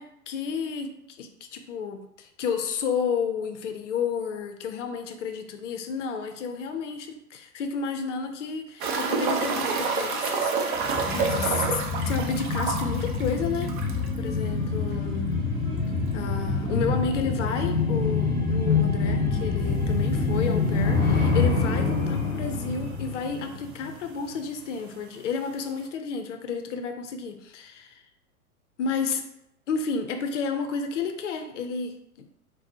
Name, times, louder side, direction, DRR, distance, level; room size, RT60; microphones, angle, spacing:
voice 1, 0.0-10.5 10.8-13.7 14.2-15.3 16.1-28.0 28.8-29.2 29.7-32.3, left 5 dB, 55° left, 7 dB, 0.5 m, -31 dB
sound 1, 8.8-14.2 14.5-14.6 14.9-15.0 17.8-17.9 19.6-19.7 20.5-20.6 20.8-20.9 21.8-21.9 22.0-22.7 23.6-23.7, right 5 dB, 35° right, 0.4 m, -28 dB
sound 2, 10.8-24.0 24.3-24.4, left 4 dB, 10° left, 0.5 m, -26 dB
4.0 x 2.0 x 2.7 m, 0.79 s
figure-of-eight pair, 105°, 45 cm